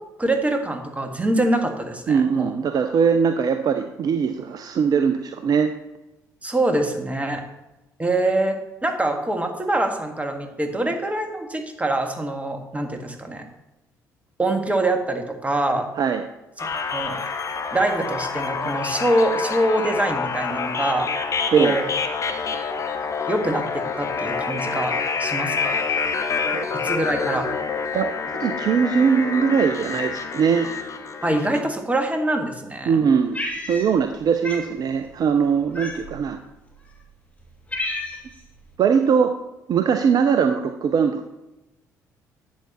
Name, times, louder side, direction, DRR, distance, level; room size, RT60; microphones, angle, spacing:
voice 1, 0.2-2.5 6.4-7.4 8.0-13.4 14.4-15.9 16.6-17.2 17.7-21.1 21.6-21.9 23.3-25.8 26.8-27.5 31.2-33.0, right 1 dB, 15° right, 4 dB, 1.7 m, -24 dB
voice 2, 2.1-5.7 16.0-16.2 21.5-21.8 26.5-26.7 27.3-27.5 27.9-28.1 28.4-30.7 32.9-36.4 38.8-39.3 39.7-41.4, right 6 dB, 45° right, 8 dB, 0.6 m, -21 dB
sound 1, 16.6-31.6, left 5 dB, 35° left, 1.0 m, -27 dB
Cat, 33.3-34.1 34.4-34.7 35.7-36.3 37.0-37.1 37.4-38.4, left 1 dB, 15° left, 2.9 m, -30 dB
11.5 x 8.3 x 3.0 m, 0.97 s
figure-of-eight pair, 45°, 9 cm